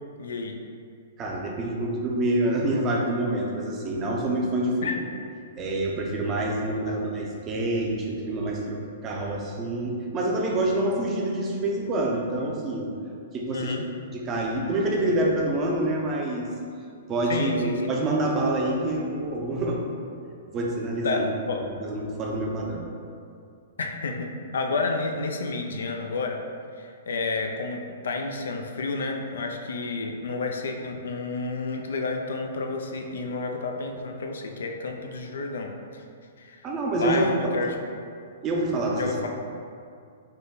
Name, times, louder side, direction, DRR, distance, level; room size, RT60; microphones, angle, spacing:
voice 1, 0.2-0.6 4.8-5.0 6.9-7.0 13.5-13.8 17.3-17.9 21.0-21.6 23.8-26.4 26.7-36.0 36.4-36.7 37.0-37.7 38.9-39.3, left 3 dB, 80° left, 3 dB, 0.4 m, -30 dB
voice 2, 1.2-4.9 5.6-12.9 13.3-13.8 14.1-16.5 17.1-19.8 20.5-21.2 21.6-22.9 36.6-37.7 38.4-39.3, right 1 dB, 25° right, -1 dB, 0.5 m, -27 dB
3.5 x 2.2 x 3.9 m, 2.3 s
hypercardioid pair, 145°, 0 cm